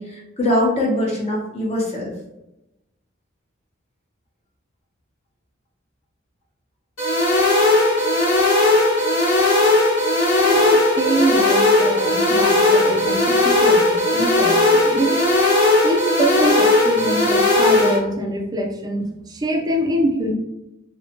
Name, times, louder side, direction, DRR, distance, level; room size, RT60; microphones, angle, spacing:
voice 1, 0.0-2.1, left 1 dB, 30° left, -3 dB, 0.6 m, -22 dB
sound 1, 7.0-18.0, left 2 dB, 80° left, 1.0 m, -17 dB
voice 2, 10.4-15.3 15.8-20.3, right 1 dB, 20° right, 2 dB, 0.3 m, -24 dB
2.6 x 2.1 x 2.8 m, 0.91 s
head